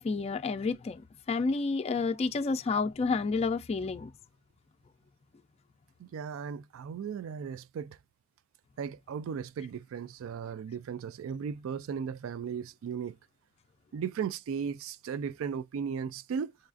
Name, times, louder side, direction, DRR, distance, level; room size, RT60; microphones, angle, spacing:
voice 1, 0.0-4.1, left 4 dB, 30° left, 0.3 m, -30 dB
voice 2, 6.0-8.0 8.8-13.2 13.9-16.6, right 7 dB, 80° right, 0.3 m, -36 dB
6.3 x 2.4 x 2.4 m
head